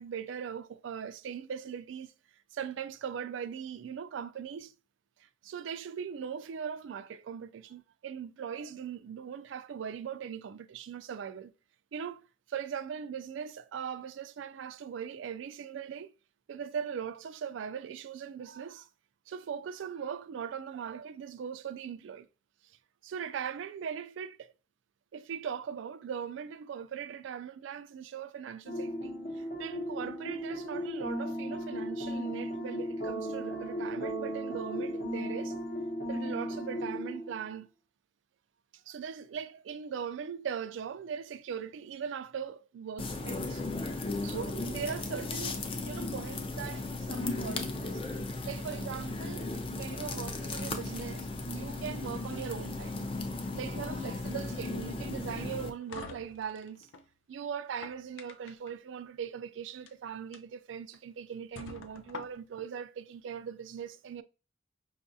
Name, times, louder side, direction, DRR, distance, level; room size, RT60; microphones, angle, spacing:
voice 1, 0.0-2.1 2.5-4.7 5.2-11.5 11.9-16.1 16.5-18.9 19.3-22.3 23.0-24.5 25.1-35.6 36.1-37.7 38.9-43.6 44.2-48.0 48.4-53.1 53.5-56.9 57.3-64.2, right 7 dB, 80° right, 0.3 m, -40 dB
sound 1, 28.7-37.4, equal, 50° left, 0.8 m, -36 dB
sound 2, 43.0-55.7, left 2 dB, 30° left, 0.4 m, -36 dB
sound 3, 55.4-57.1 57.6-58.7 59.7-59.9 60.3-60.4 60.9-61.0 61.6-62.7, left 4 dB, 85° left, 0.4 m, -46 dB
5.5 x 2.4 x 2.6 m
head